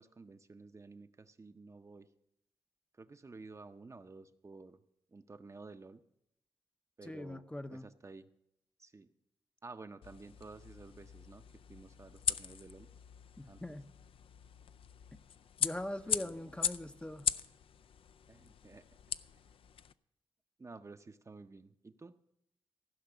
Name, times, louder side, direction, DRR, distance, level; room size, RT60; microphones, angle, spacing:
voice 1, 0.0-2.1 2.9-4.8 5.1-6.0 7.0-7.4 7.7-8.3 8.8-9.1 9.6-11.4 11.7-12.9 13.4-13.8 16.1-16.5 18.3-18.8 19.3-19.5 20.6-22.2, right 3 dB, 30° right, 9 dB, 0.6 m, -52 dB
voice 2, 7.0-7.9 13.4-13.9 15.6-17.3, left 1 dB, 10° left, 8 dB, 0.6 m, -42 dB
sound 1, 10.0-19.9, left 8 dB, 70° left, 0.4 m, -40 dB
15.5 x 5.8 x 8.0 m, 0.78 s
cardioid pair, 85°, 10 cm